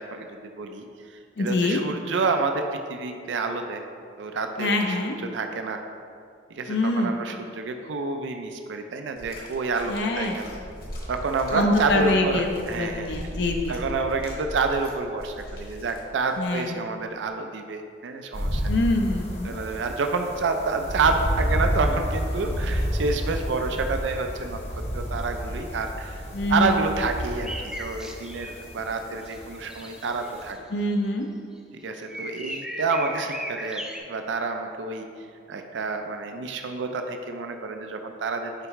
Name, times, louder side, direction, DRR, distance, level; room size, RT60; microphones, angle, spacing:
voice 1, 0.0-3.8 4.2-5.8 6.5-10.6 11.1-13.4 13.7-18.8 19.4-26.2 26.5-30.6 31.7-35.1 35.5-38.5, right 4 dB, 80° right, 5 dB, 0.4 m, -28 dB
voice 2, 1.4-1.8 4.6-5.2 6.7-7.1 9.9-10.4 11.5-12.5 12.8-13.7 16.4-16.7 18.7-19.5 26.3-26.7 30.7-31.3, left 2 dB, 70° left, 3 dB, 0.5 m, -24 dB
sound 1, 9.2-16.4 17.2-17.3, equal, 50° left, 1.1 m, -39 dB
sound 2, 18.3-30.5, equal, 35° left, 0.9 m, -30 dB
sound 3, 27.4-28.6 29.2-30.6 30.9-31.1 31.6-31.7 32.1-34.0, right 1 dB, 5° right, 0.3 m, -37 dB
6.6 x 4.7 x 3.0 m, 2.3 s
head